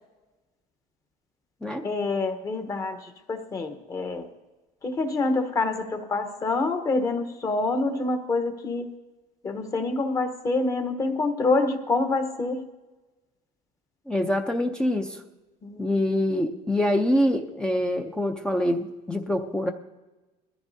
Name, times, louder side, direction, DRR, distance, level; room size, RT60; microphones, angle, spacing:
voice 1, 1.8-4.3 4.8-8.9 9.4-12.6 15.6-16.1, left 3 dB, 25° left, 7 dB, 1.1 m, -27 dB
voice 2, 14.1-15.2 15.8-19.7, left 1 dB, 5° left, 3 dB, 0.6 m, -25 dB
21.0 x 14.0 x 2.7 m, 1.1 s
cardioid pair, 160°, 15 cm